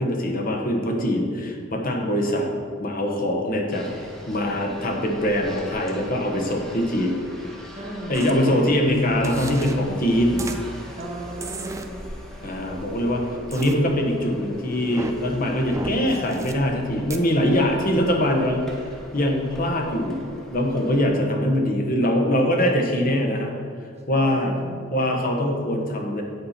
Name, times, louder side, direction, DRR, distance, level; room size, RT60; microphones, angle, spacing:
voice 1, 0.0-2.5 2.8-3.9 4.3-7.2 8.1-10.4 12.4-18.6 19.1-20.2 20.5-23.5 24.1-24.5 24.9-26.2, left 1 dB, 45° left, 1 dB, 1.1 m, -23 dB
sound 1, 3.7-21.1, equal, 5° left, 0.9 m, -41 dB
voice 2, 7.8-8.2 11.0-11.8 24.1-24.9, right 1 dB, 35° right, 0 dB, 1.1 m, -35 dB
sound 2, 8.1-8.3 9.2-9.7 10.4-10.6 11.4-11.8 13.5-13.7 14.8-15.1 15.7-16.5 17.1-17.2, right 2 dB, 15° right, 0.4 m, -34 dB
8.6 x 4.2 x 5.9 m, 2.2 s
head